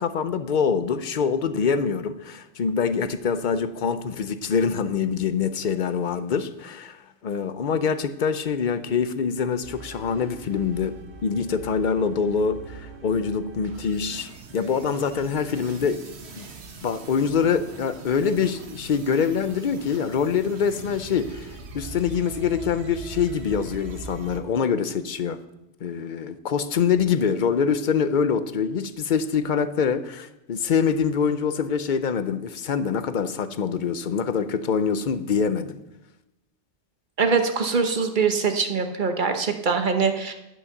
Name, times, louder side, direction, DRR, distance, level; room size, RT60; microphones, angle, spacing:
voice 1, 0.0-16.0 16.4-16.5 16.8-21.5 21.7-25.4 25.8-35.8, left 6 dB, 50° left, 12 dB, 0.7 m, -25 dB
sound 1, 9.6-24.4, right 4 dB, 65° right, 1.4 m, -42 dB
voice 2, 37.2-40.3, right 5 dB, 45° right, 6 dB, 1.1 m, -23 dB
11.0 x 6.3 x 6.6 m, 0.94 s
omnidirectional pair, 1.2 m